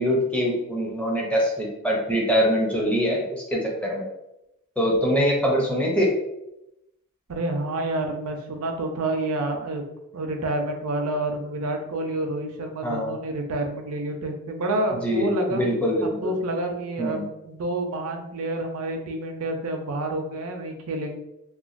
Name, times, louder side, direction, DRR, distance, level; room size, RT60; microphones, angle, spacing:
voice 1, 0.0-4.1 4.8-6.1 12.8-13.2 15.0-16.3 17.0-17.2, equal, 5° left, -2 dB, 0.5 m, -23 dB
voice 2, 7.3-9.8 10.1-15.6 16.0-21.2, right 1 dB, 75° right, 3 dB, 0.5 m, -28 dB
2.9 x 2.2 x 2.5 m, 0.88 s
head